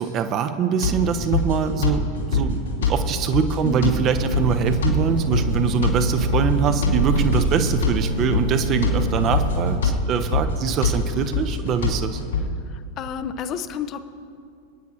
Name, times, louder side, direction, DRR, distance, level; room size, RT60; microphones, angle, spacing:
voice 1, 0.0-2.0 2.3-12.2, right 7 dB, 30° right, 9 dB, 0.8 m, -23 dB
sound 1, 0.8-12.4, left 3 dB, 70° left, 2.4 m, -25 dB
voice 2, 3.6-4.1 12.7-14.0, left 7 dB, 35° left, 10 dB, 0.7 m, -31 dB
sound 2, 4.0-9.8, right 1 dB, 70° right, 3.5 m, -26 dB
27.0 x 9.4 x 2.7 m, 2.3 s
figure-of-eight pair, 90°, 0 cm